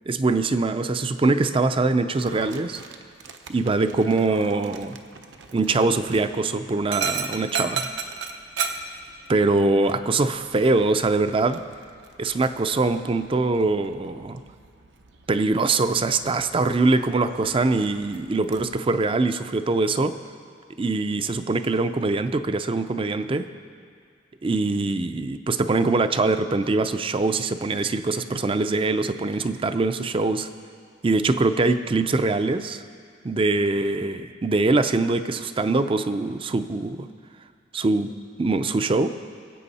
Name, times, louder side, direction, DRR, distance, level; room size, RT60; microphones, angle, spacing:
voice 1, 0.1-2.8 3.5-5.0 5.5-7.9 9.3-11.6 12.2-14.4 15.3-20.2 20.8-23.5 24.4-30.5 31.0-32.8 33.2-37.1 37.7-38.1 38.4-39.1, right 3 dB, 30° right, 10 dB, 0.4 m, -23 dB
Dog, 2.1-18.7, right 5 dB, 75° right, 0.8 m, -37 dB
22.0 x 8.1 x 4.2 m, 2.1 s
head